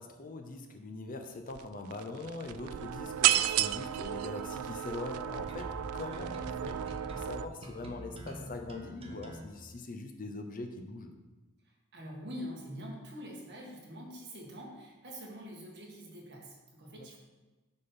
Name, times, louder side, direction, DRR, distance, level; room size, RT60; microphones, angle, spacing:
voice 1, 0.0-11.1, left 2 dB, 40° left, 5 dB, 0.6 m, -42 dB
sound 1, 1.5-1.6 1.9-7.5, right 12 dB, 85° right, 0.3 m, -32 dB
sound 2, 5.5-9.5, right 1 dB, 25° right, 0.7 m, -44 dB
voice 2, 11.6-17.2, equal, 50° right, -2 dB, 1.7 m, -45 dB
6.6 x 4.3 x 5.5 m, 1.2 s
head